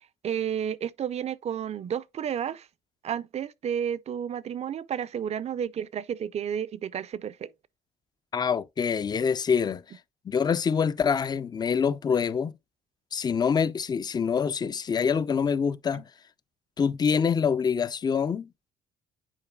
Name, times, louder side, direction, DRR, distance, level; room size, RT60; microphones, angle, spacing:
voice 1, 0.2-2.7 3.0-7.5, right 8 dB, 40° right, 0.4 m, -31 dB
voice 2, 8.3-9.8 10.3-12.5 13.1-16.1 16.8-18.5, left 6 dB, 25° left, 0.4 m, -25 dB
9.9 x 4.3 x 2.2 m
cardioid pair, 110°, 17 cm